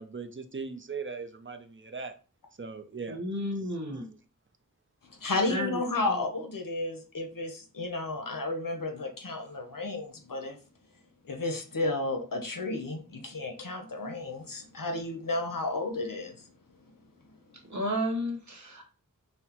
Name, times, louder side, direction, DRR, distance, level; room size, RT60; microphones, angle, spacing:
voice 1, 0.0-2.1 2.6-3.2, right 5 dB, 40° right, 0.5 m, -39 dB
voice 2, 3.1-4.1 5.5-5.8 17.7-18.9, equal, 60° right, 1.2 m, -32 dB
voice 3, 5.1-10.6 11.2-16.5 17.2-17.4, left 2 dB, 85° left, 0.8 m, -32 dB
5.5 x 2.1 x 2.9 m
wide cardioid pair, 45°, 32 cm